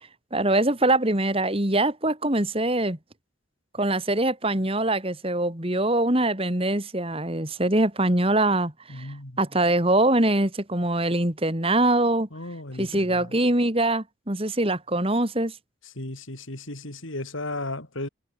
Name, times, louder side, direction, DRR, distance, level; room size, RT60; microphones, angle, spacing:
voice 1, 0.3-3.0 3.8-9.1 9.4-12.3 12.8-15.5, right 1 dB, 30° right, 2.7 m, -23 dB
voice 2, 8.9-9.4 12.3-13.4 16.0-18.1, left 2 dB, 75° left, 4.4 m, -35 dB
head